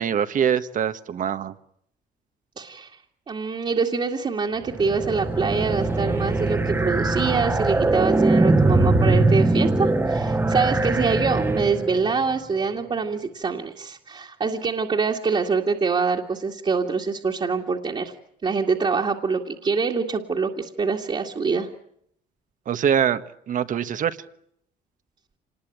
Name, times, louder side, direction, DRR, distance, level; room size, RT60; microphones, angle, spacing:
voice 1, 0.0-1.5 22.7-23.2 23.5-24.2, right 8 dB, 50° right, 11 dB, 1.5 m, -23 dB
voice 2, 2.6-2.9 3.3-18.1 18.4-21.7, right 5 dB, 30° right, -1 dB, 2.2 m, -25 dB
sound 1, 4.6-12.1, right 2 dB, 15° right, 1.5 m, -21 dB
26.5 x 20.5 x 8.9 m, 0.71 s
cardioid pair, 110°, 17 cm